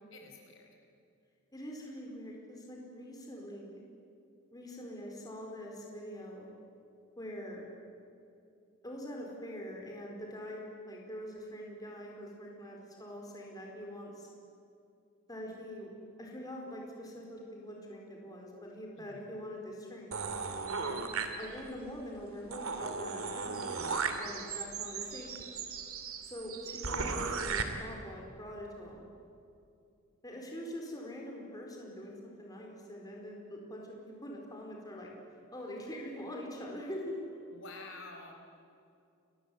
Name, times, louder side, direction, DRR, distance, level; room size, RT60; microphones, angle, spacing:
voice 1, 0.1-0.8 19.0-19.2 37.5-38.3, left 3 dB, 65° left, 2 dB, 5.0 m, -49 dB
voice 2, 1.5-3.8 4.5-6.5 7.2-7.7 8.8-14.3 15.3-15.9 16.2-20.1 20.8-21.0 21.4-23.6 24.2-25.6 26.2-29.0 30.2-35.1 35.5-37.2, equal, 20° left, -1 dB, 4.5 m, -44 dB
sound 1, 20.1-21.8 22.2-22.3 22.5-27.6, right 5 dB, 90° right, 2.6 m, -36 dB
30.0 x 22.0 x 8.5 m, 2.6 s
head